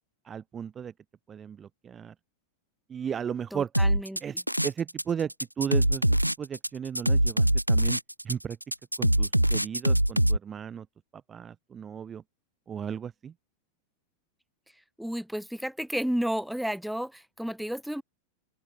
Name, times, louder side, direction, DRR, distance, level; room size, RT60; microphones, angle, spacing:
voice 1, 0.3-0.9 1.3-2.1 2.9-3.7 4.2-4.3 4.6-5.3 5.6-8.0 8.2-8.6 9.0-10.9 11.3-12.2 12.7-13.3, right 8 dB, 20° right, 1.9 m, -35 dB
voice 2, 3.5-4.4 15.0-18.0, equal, ahead, 3.8 m, -32 dB
sound 1, 3.7-5.0 5.3-10.4, right 1 dB, 90° right, 0.8 m, -23 dB
open air
figure-of-eight pair, 90°, 0 cm